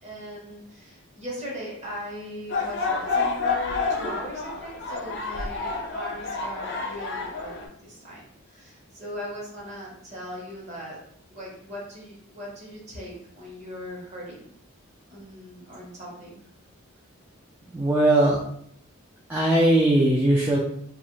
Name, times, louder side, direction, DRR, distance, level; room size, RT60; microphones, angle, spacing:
voice 1, 0.0-8.2 8.5-11.0 11.3-14.5 15.1-16.4, equal, 30° right, -5 dB, 1.0 m, -39 dB
sound 1, 2.5-7.6, left 4 dB, 55° left, 0.4 m, -29 dB
voice 2, 17.7-18.4 19.3-20.6, right 1 dB, 10° right, -7 dB, 0.3 m, -19 dB
2.8 x 2.4 x 3.0 m, 0.69 s
head